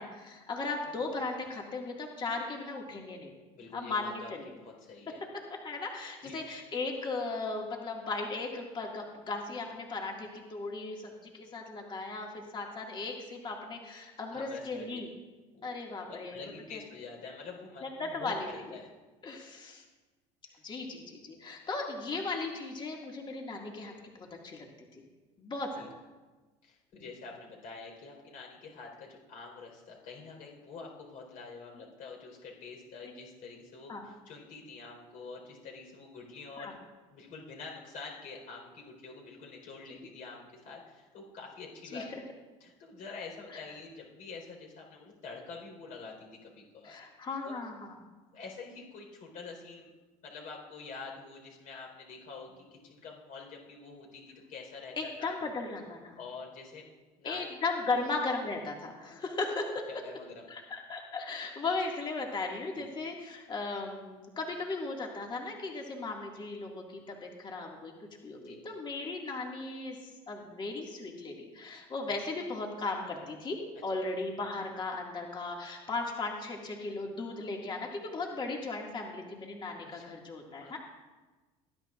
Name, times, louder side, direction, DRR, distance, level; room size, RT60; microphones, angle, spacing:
voice 1, 0.0-3.3 3.7-4.5 5.6-15.1 15.6-16.8 17.8-18.5 19.2-19.8 20.6-24.7 24.9-25.0 25.4-25.9 26.9-27.0 33.0-33.1 33.9-34.1 36.6-36.7 41.9-42.2 43.5-43.6 46.8-47.9 55.0-56.2 57.2-59.9 60.5-67.9 68.2-70.0 70.3-80.8, left 3 dB, 30° left, 0 dB, 2.2 m, -37 dB
voice 2, 3.5-5.2 6.2-6.3 14.3-15.0 15.5-15.7 16.1-18.9 20.5-20.6 25.7-25.9 26.6-36.8 37.1-42.1 42.6-46.9 47.4-47.6 48.3-49.9 50.2-55.3 56.2-56.9 57.2-57.5 59.9-60.4 62.8-62.9 68.3-68.6 72.1-72.2 79.8-80.2 80.6-80.8, left 4 dB, 60° left, 0 dB, 4.4 m, -46 dB
20.0 x 11.5 x 2.5 m, 1.2 s
supercardioid pair, 90°, 15 cm